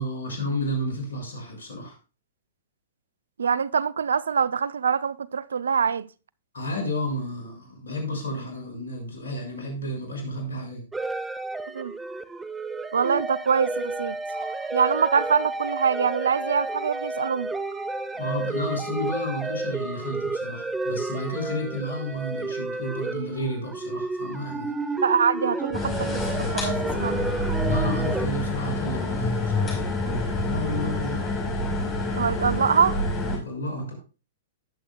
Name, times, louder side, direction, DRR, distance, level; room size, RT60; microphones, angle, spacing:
voice 1, 0.0-2.0 6.5-10.8 18.1-24.7 27.7-29.8 30.4-31.3 33.3-33.9, equal, 75° left, 5.8 m, -31 dB
voice 2, 3.4-6.1 11.7-11.9 12.9-17.5 25.0-27.3 32.2-33.0, right 6 dB, 80° right, 0.4 m, -24 dB
sound 1, 10.9-28.3, right 2 dB, 10° right, 0.9 m, -31 dB
sound 2, 25.7-33.4, left 2 dB, 20° left, 5.0 m, -27 dB
18.0 x 7.6 x 2.2 m
hypercardioid pair, 110°, 0 cm